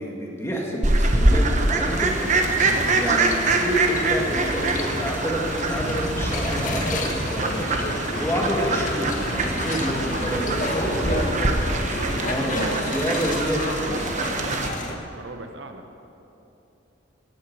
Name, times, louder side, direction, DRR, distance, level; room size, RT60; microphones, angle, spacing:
voice 1, 0.0-2.3 2.9-11.3 11.9-13.6, equal, 15° left, -2 dB, 2.1 m, -28 dB
Fowl, 0.8-14.7, right 2 dB, 40° right, 1.2 m, -25 dB
sound 1, 1.9-14.9, left 1 dB, 40° left, 1.2 m, -30 dB
sound 2, 2.5-14.7, right 2 dB, 85° right, 1.8 m, -40 dB
voice 2, 2.6-3.0 11.5-13.9 14.9-15.9, right 2 dB, 65° right, 6 dB, 1.0 m, -37 dB
17.5 x 14.0 x 4.9 m, 3.0 s
head